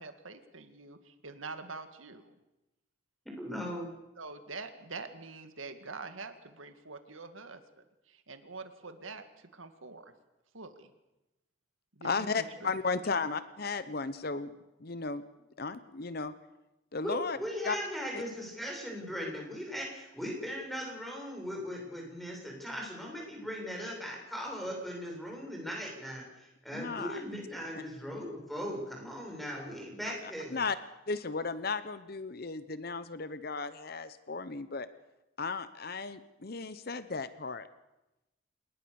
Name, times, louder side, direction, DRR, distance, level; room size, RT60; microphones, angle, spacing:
voice 1, 0.0-2.3 4.2-7.6 8.1-9.3 9.5-10.1 10.5-10.9 12.0-12.7, right 3 dB, 90° right, 9 dB, 2.1 m, -45 dB
voice 2, 3.4-3.9 17.0-30.6, equal, ahead, -1 dB, 7.4 m, -39 dB
voice 3, 12.0-14.5 14.8-15.2 15.6-16.3 16.9-17.4 17.6-17.8 18.1-18.2 26.7-27.2 30.5-30.8 31.1-34.9 35.4-37.7, left 4 dB, 50° left, 13 dB, 0.9 m, -35 dB
28.0 x 20.0 x 7.0 m, 0.96 s
head